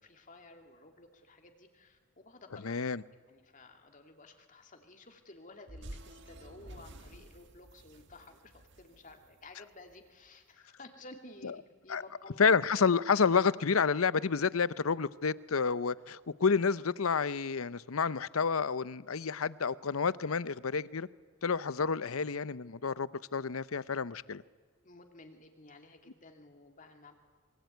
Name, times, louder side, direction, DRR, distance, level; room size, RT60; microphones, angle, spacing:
voice 1, 0.0-2.8 3.3-12.4 24.8-27.1, left 2 dB, 40° left, 2.8 m, -54 dB
voice 2, 2.6-3.0 11.9-12.0 12.4-21.1 21.4-24.4, left 5 dB, 85° left, 0.7 m, -29 dB
sound 1, 5.7-10.1, right 1 dB, 55° right, 1.6 m, -51 dB
26.0 x 23.5 x 9.3 m
head